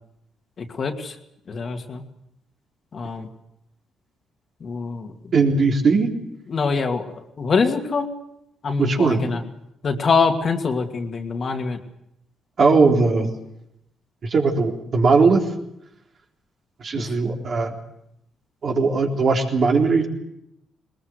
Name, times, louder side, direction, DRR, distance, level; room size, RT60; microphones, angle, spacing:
voice 1, 0.6-1.1 1.5-2.0 2.9-3.3 4.6-5.1 6.5-8.1 8.6-9.4 9.8-11.8, left 4 dB, 45° left, 4 dB, 2.4 m, -24 dB
voice 2, 5.3-6.1 8.8-9.2 12.6-13.3 14.2-15.4 16.8-17.7 18.6-20.1, right 4 dB, 50° right, 1 dB, 3.9 m, -19 dB
20.5 x 20.5 x 8.2 m, 0.82 s
cardioid pair, 90°, 0 cm